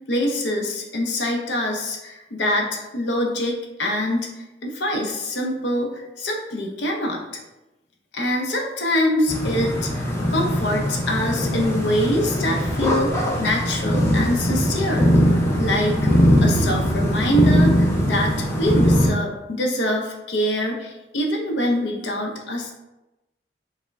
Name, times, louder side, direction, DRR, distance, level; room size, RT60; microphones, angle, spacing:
voice 1, 0.1-7.2 8.1-15.1 15.6-16.1 16.4-22.7, left 1 dB, 70° left, 1 dB, 0.7 m, -24 dB
sound 1, 9.3-19.1, equal, 15° left, 0.6 m, -20 dB
4.8 x 2.1 x 3.4 m, 0.98 s
head